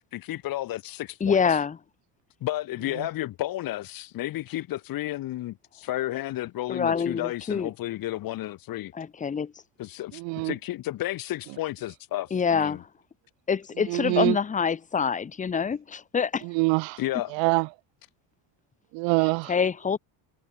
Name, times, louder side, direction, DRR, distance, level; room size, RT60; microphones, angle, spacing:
voice 1, 0.1-1.6 2.4-8.9 9.8-12.8 17.0-17.4, left 15 dB, 50° left, 1.4 m, -32 dB
voice 2, 1.2-1.8 6.7-7.7 8.9-9.5 12.3-12.8 13.5-16.5 19.5-20.0, left 6 dB, 15° left, 0.8 m, -26 dB
voice 3, 10.1-10.5 13.9-14.4 16.4-17.0 17.3-17.7 18.9-19.5, right 30 dB, 75° right, 0.7 m, -25 dB
cardioid pair, 140°, 45 cm